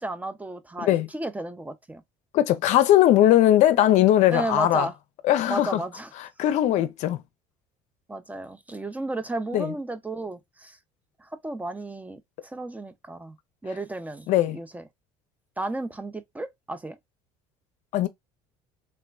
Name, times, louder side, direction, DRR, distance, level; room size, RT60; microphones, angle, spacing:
voice 1, 0.0-2.0 4.3-4.9 5.5-6.1 8.1-10.8 11.2-13.4 13.6-14.3 14.5-14.8 15.6-17.0, right 2 dB, 10° right, 0.4 m, -33 dB
voice 2, 2.3-4.9 5.3-5.8 6.4-7.2 9.5-9.7 14.3-14.6 17.9-18.1, left 13 dB, 60° left, 0.5 m, -19 dB
3.2 x 2.0 x 2.3 m
supercardioid pair, 90°, 13 cm